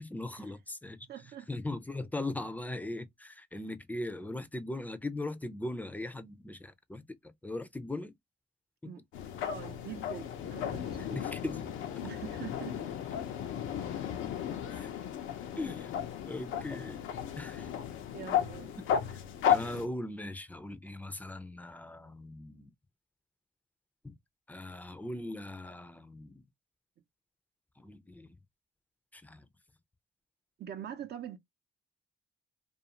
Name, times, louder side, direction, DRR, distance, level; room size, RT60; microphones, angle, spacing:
voice 1, 0.0-1.1 1.5-8.1 8.8-8.9 11.0-11.7 14.7-14.9 15.6-15.9 16.2-17.0 17.4-17.7 18.9-19.2 19.5-22.7 24.0-24.2 24.5-26.4 27.8-28.3 29.1-29.5, left 2 dB, 10° left, 0.4 m, -39 dB
voice 2, 1.1-1.5 8.8-9.0 9.4-11.3 12.0-12.8 18.1-18.7 30.6-31.4, right 10 dB, 55° right, 0.6 m, -44 dB
sound 1, 9.1-19.9, left 9 dB, 90° left, 0.6 m, -34 dB
2.5 x 2.4 x 2.8 m
cardioid pair, 90°, 20 cm